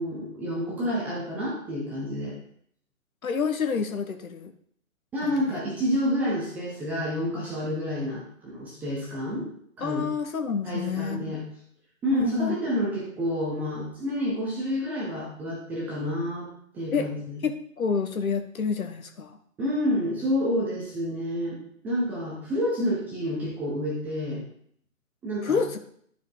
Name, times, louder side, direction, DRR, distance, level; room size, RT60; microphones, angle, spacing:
voice 1, 0.0-2.3 5.1-9.5 9.8-10.1 10.6-11.4 12.0-17.4 19.6-21.6 21.8-24.4 25.2-25.6, equal, 5° right, -5 dB, 0.5 m, -29 dB
voice 2, 3.2-4.5 5.2-5.4 9.8-11.4 12.1-12.5 16.9-17.1 17.4-19.4 25.4-25.8, left 5 dB, 75° left, 7 dB, 1.3 m, -28 dB
11.5 x 4.8 x 3.8 m, 0.63 s
hypercardioid pair, 145°, 42 cm